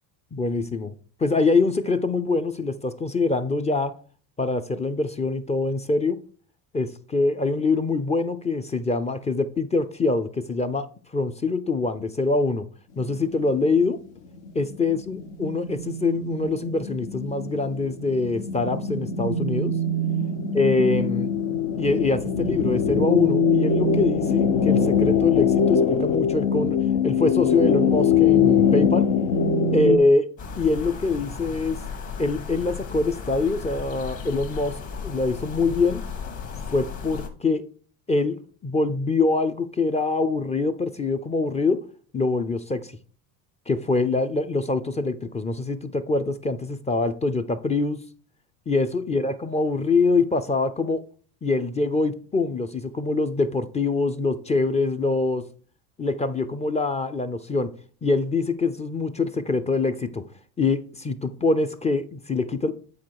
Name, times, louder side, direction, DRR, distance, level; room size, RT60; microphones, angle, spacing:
voice 1, 0.3-0.9 1.2-3.9 4.4-6.2 6.7-10.9 11.1-12.7 13.0-14.0 14.5-19.7 20.5-21.3 21.8-26.8 27.0-29.1 29.7-30.3 30.6-31.8 32.2-34.8 35.0-36.0 36.7-37.6 38.1-38.4 38.6-41.8 42.1-42.9 43.7-48.0 48.7-51.0 51.4-55.4 56.0-57.7 58.0-60.2 60.6-62.7, left 3 dB, 15° left, 0.4 m, -24 dB
sound 1, 13.4-13.5 14.4-30.0, left 5 dB, 70° left, 1.0 m, -22 dB
sound 2, 30.4-37.3, left 5 dB, 45° left, 1.7 m, -35 dB
8.5 x 4.1 x 4.7 m
supercardioid pair, 95°, 43 cm